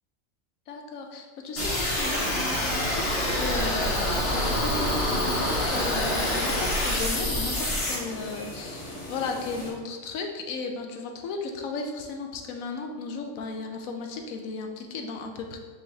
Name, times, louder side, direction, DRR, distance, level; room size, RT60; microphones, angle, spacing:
voice 1, 0.7-15.6, left 4 dB, 80° left, 3 dB, 1.0 m, -35 dB
sound 1, 1.6-7.9, left 1 dB, 60° left, 1.4 m, -27 dB
Ocean, 1.6-7.8, equal, 75° right, 1.5 m, -34 dB
sound 2, 3.9-9.7, left 2 dB, 30° left, 0.6 m, -38 dB
5.2 x 3.3 x 2.7 m, 1.5 s
omnidirectional pair, 1.4 m